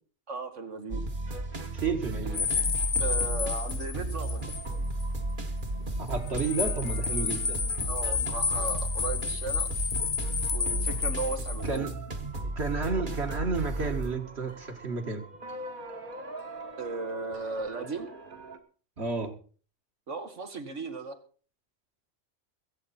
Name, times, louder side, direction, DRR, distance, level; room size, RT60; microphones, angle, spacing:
voice 1, 0.3-1.0 3.0-4.6 7.9-9.7 10.5-11.9 16.8-18.1 20.1-21.2, right 3 dB, 85° right, 6 dB, 2.2 m, -36 dB
sound 1, 0.9-18.6, right 1 dB, 45° right, 1.5 m, -34 dB
voice 2, 1.7-2.5 6.1-7.6 11.6-11.9 12.6-15.2 19.0-19.3, right 4 dB, 60° right, 4 dB, 2.2 m, -31 dB
sound 2, 2.3-4.7 5.0-5.1 6.1-11.8, left 6 dB, 40° left, 0.7 m, -31 dB
22.5 x 8.2 x 4.3 m, 0.41 s
omnidirectional pair, 1.2 m